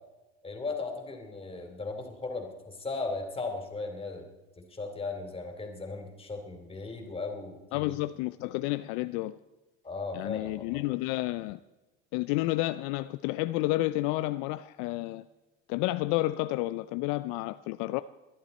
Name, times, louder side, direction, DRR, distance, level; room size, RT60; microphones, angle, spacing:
voice 1, 0.4-4.2 4.6-8.0 9.8-10.8, left 3 dB, 20° left, 4 dB, 2.9 m, -37 dB
voice 2, 7.7-9.4 10.1-11.6 12.1-15.2 15.7-18.0, left 18 dB, 65° left, 13 dB, 0.5 m, -30 dB
21.5 x 11.0 x 4.2 m, 1.1 s
supercardioid pair, 100°, 31 cm